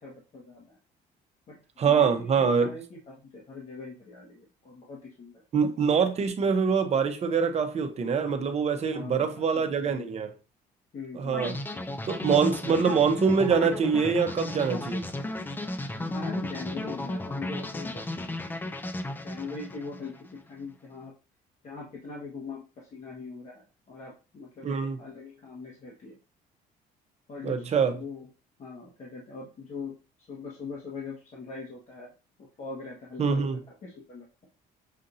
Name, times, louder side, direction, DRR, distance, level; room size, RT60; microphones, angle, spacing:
voice 1, 0.0-0.6 1.5-1.6 1.8-3.0 3.3-5.4 8.9-10.1 10.9-12.0 12.4-12.8 16.0-18.5 19.2-20.1 20.5-21.1 21.6-26.2 27.3-28.3 28.6-32.1 32.6-34.2, left 4 dB, 45° left, 1.3 m, -41 dB
voice 2, 1.8-2.7 5.5-10.3 11.1-11.6 12.1-15.1 24.6-25.0 27.4-27.9 33.2-33.6, right 6 dB, 40° right, 0.8 m, -24 dB
sound 1, 11.3-20.4, left 1 dB, 10° left, 0.4 m, -34 dB
6.5 x 2.6 x 2.6 m
cardioid pair, 110°, 17 cm